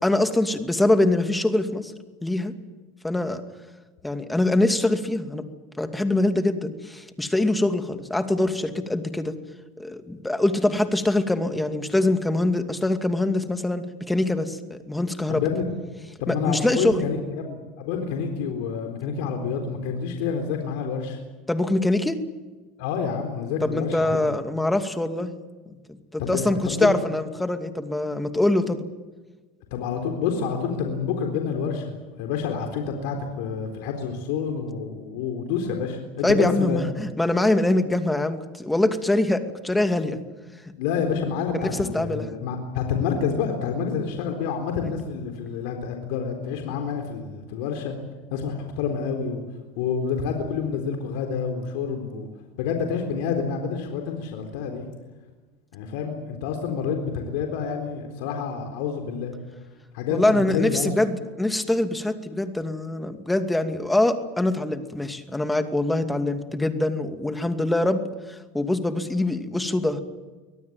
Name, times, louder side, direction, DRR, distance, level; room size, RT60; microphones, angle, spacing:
voice 1, 0.0-1.9 2.2-2.5 3.0-3.4 4.0-5.5 5.8-9.3 9.8-15.4 16.3-17.0 21.5-22.2 23.6-25.3 25.7-25.8 26.1-28.8 36.2-40.2 41.5-42.4 60.1-68.0 68.3-70.0, left 2 dB, 10° left, 7 dB, 2.5 m, -24 dB
voice 2, 15.3-15.7 16.2-21.2 22.8-24.3 26.2-26.9 29.7-36.8 40.8-47.9 48.3-49.4 49.8-52.3 52.6-54.9 55.7-59.3 59.9-60.9, left 6 dB, 75° left, 4 dB, 3.9 m, -28 dB
24.5 x 18.0 x 9.4 m, 1.3 s
supercardioid pair, 105°, 0 cm